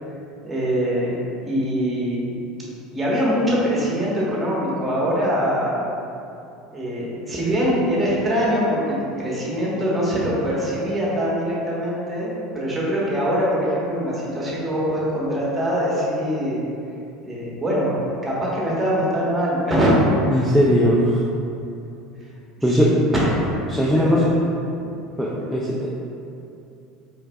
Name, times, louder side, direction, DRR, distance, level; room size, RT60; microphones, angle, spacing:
voice 1, 0.4-2.4 2.9-5.8 6.7-16.6 17.2-17.9 18.2-19.9 20.3-20.4 22.7-23.3 23.8-24.3, equal, 20° right, -6 dB, 1.3 m, -23 dB
voice 2, 20.3-21.2 22.6-23.0 23.7-24.3 25.2-26.0, equal, ahead, -5 dB, 0.4 m, -19 dB
4.6 x 3.3 x 2.3 m, 2.7 s
supercardioid pair, 90°, 0 cm